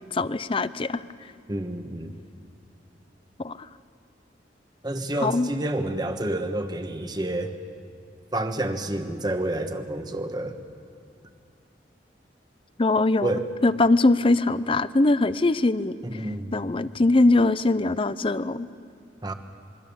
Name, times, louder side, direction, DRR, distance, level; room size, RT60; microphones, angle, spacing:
voice 1, 0.1-1.0 3.4-3.7 5.2-5.5 12.8-15.9 16.5-18.7, left 2 dB, 30° left, 15 dB, 0.6 m, -22 dB
voice 2, 1.5-2.1 4.8-7.5 8.3-10.6 13.2-13.4 16.0-16.5 19.2-19.3, right 1 dB, 25° right, 7 dB, 1.3 m, -29 dB
27.0 x 23.0 x 7.1 m, 2.5 s
head